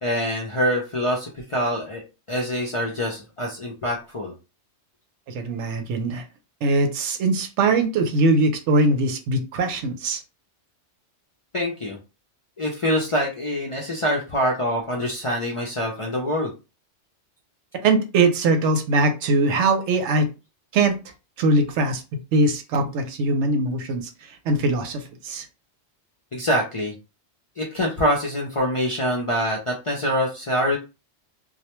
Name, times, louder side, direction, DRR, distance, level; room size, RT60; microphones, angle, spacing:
voice 1, 0.0-2.0 2.3-4.3 11.5-12.0 12.6-16.5 26.3-26.9 27.6-30.8, equal, 50° left, 0.4 m, -25 dB
voice 2, 5.3-6.2 6.6-10.2 17.8-20.3 20.7-21.0 21.4-22.0 22.3-24.1 24.5-25.4, right 2 dB, 85° right, 0.9 m, -21 dB
2.2 x 2.1 x 2.9 m
omnidirectional pair, 1.2 m